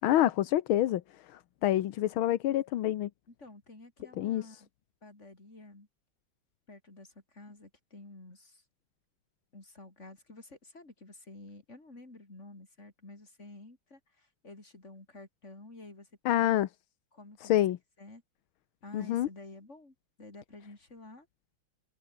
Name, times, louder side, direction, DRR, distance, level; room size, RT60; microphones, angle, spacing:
voice 1, 0.0-1.0 1.6-3.1 4.2-4.4 16.3-16.7 17.5-17.8 18.9-19.3, left 13 dB, 85° left, 1.7 m, -26 dB
voice 2, 3.3-4.7 5.0-5.9 6.7-8.6 9.5-16.1 16.4-16.6 17.1-17.6 18.0-18.2 18.8-21.3, left 2 dB, 35° left, 5.3 m, -51 dB
omnidirectional pair, 2.2 m